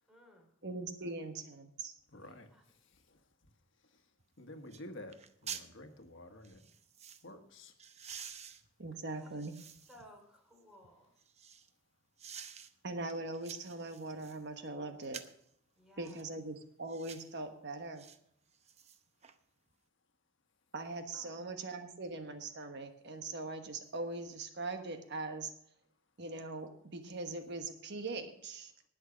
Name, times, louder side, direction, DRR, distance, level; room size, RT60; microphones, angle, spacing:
voice 1, 0.1-0.5 1.0-1.2 2.2-2.6 9.2-9.4 9.9-11.1 15.7-16.3 21.1-21.4, equal, 5° right, 1 dB, 3.3 m, -59 dB
voice 2, 0.6-1.9 8.8-9.5 12.8-15.2 16.0-18.0 20.7-25.5 26.2-28.7, right 2 dB, 60° right, 6 dB, 1.3 m, -41 dB
voice 3, 2.1-2.5 4.4-6.7 7.2-7.7, left 1 dB, 65° left, 6 dB, 1.4 m, -50 dB
sound 1, 4.2-4.3 4.7-4.9 5.1-5.7 6.4-7.2 7.8-10.1 10.6-11.7 12.2-12.7 13.1-14.4 15.0-15.4 16.0-16.3 16.9-17.3 18.0-18.2 18.5-19.4 19.7-19.8, right 7 dB, 35° right, 0.7 m, -49 dB
19.0 x 6.5 x 5.1 m, 0.68 s
head